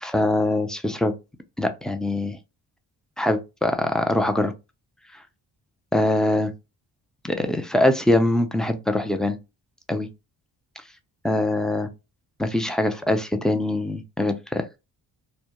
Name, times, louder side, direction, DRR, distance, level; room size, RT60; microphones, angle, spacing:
voice 1, 0.0-1.1 1.6-2.4 3.2-4.5 5.9-6.5 7.2-9.4 9.9-10.1 11.2-11.9 12.4-14.6, left 1 dB, ahead, 0.4 m, -23 dB
2.2 x 2.1 x 2.9 m
supercardioid pair, 50°, 46 cm